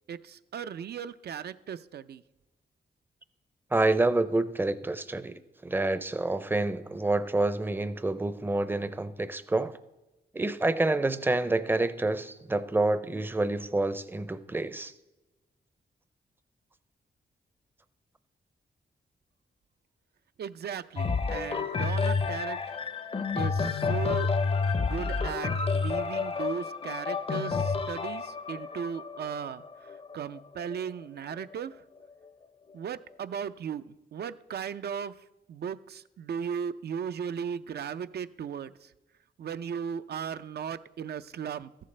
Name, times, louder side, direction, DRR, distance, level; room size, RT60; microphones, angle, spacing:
voice 1, 0.1-2.2 20.4-22.6 23.3-24.3 24.8-29.6 30.1-31.7 32.7-35.1 35.5-38.9 39.4-41.7, right 7 dB, 70° right, 0.5 m, -36 dB
voice 2, 3.7-9.8 10.3-14.9, right 2 dB, 10° right, 0.5 m, -28 dB
sound 1, 21.0-30.7 31.4-31.5, left 4 dB, 35° left, 0.6 m, -30 dB
14.0 x 11.0 x 3.3 m
wide cardioid pair, 125°, 17 cm